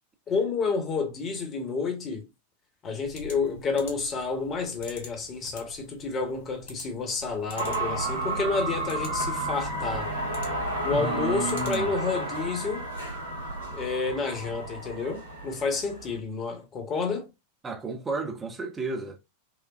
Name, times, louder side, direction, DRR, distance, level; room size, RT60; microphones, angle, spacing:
voice 1, 0.3-2.3 2.8-10.1 10.8-12.9 13.7-17.3, left 4 dB, 30° left, 1.1 m, -30 dB
sound 1, 3.0-12.2, left 2 dB, 60° left, 1.2 m, -46 dB
sound 2, 7.5-16.2, right 1 dB, 80° right, 1.4 m, -32 dB
voice 2, 10.9-11.9 17.6-19.2, right 4 dB, 20° right, 0.8 m, -32 dB
5.1 x 2.2 x 2.4 m
figure-of-eight pair, 90°, 0 cm